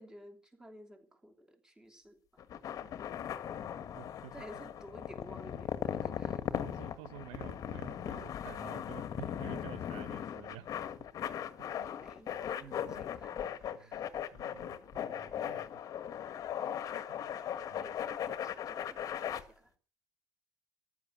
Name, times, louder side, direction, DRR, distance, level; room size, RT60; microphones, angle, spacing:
voice 1, 0.0-2.5 4.3-6.4 12.0-14.1 17.3-19.7, equal, 10° right, 2.9 m, -54 dB
sound 1, 2.4-19.4, left 9 dB, 40° left, 1.6 m, -38 dB
voice 2, 3.9-4.3 6.6-10.7 11.7-11.9 12.6-13.0 13.7-14.0 14.3-15.7 17.1-17.3 17.7-17.9, right 11 dB, 90° right, 1.4 m, -51 dB
14.0 x 11.5 x 8.1 m
cardioid pair, 155°, 9 cm